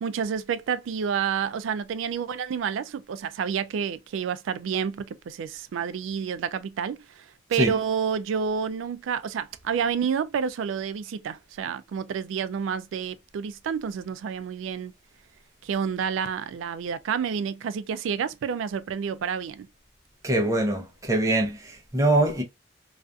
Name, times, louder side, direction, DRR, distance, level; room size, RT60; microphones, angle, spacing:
voice 1, 0.0-14.9 15.6-19.7, right 7 dB, 85° right, 0.3 m, -29 dB
voice 2, 20.2-22.4, right 1 dB, 15° right, 0.5 m, -23 dB
2.4 x 2.4 x 2.2 m
head